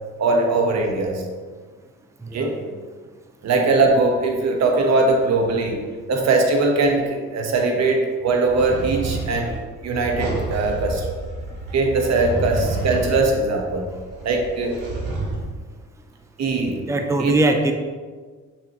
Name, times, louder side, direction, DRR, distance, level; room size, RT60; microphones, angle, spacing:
voice 1, 0.2-1.2 2.3-2.5 3.4-5.8 6.1-9.5 9.8-11.1 11.7-13.9 14.2-14.8 16.4-16.8 17.2-17.3, right 3 dB, 60° right, 2 dB, 1.3 m, -20 dB
voice 2, 2.2-2.6 12.2-12.3 13.9-14.1 16.9-17.7, right 2 dB, 10° right, 5 dB, 0.6 m, -22 dB
sound 1, 8.5-15.4, right 2 dB, 90° right, 1.6 m, -29 dB
6.5 x 5.9 x 3.0 m, 1.5 s
cardioid pair, 90°, 30 cm